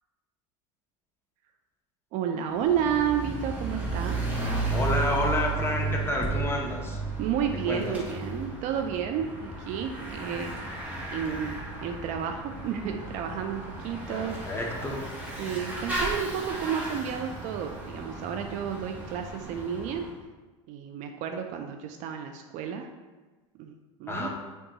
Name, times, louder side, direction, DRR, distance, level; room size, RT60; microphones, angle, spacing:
voice 1, 2.1-4.2 7.2-10.5 11.1-14.4 15.4-20.1 20.7-22.9 23.6-23.7 24.0-24.3, right 8 dB, 50° right, 5 dB, 0.4 m, -31 dB
Bicycle / Mechanisms, 2.5-20.1, right 3 dB, 10° right, 1.0 m, -34 dB
voice 2, 4.7-7.0 7.7-8.0 14.1-15.0 24.1-24.3, left 2 dB, 15° left, -1 dB, 0.8 m, -29 dB
5.2 x 2.3 x 2.8 m, 1.2 s
hypercardioid pair, 100°, 16 cm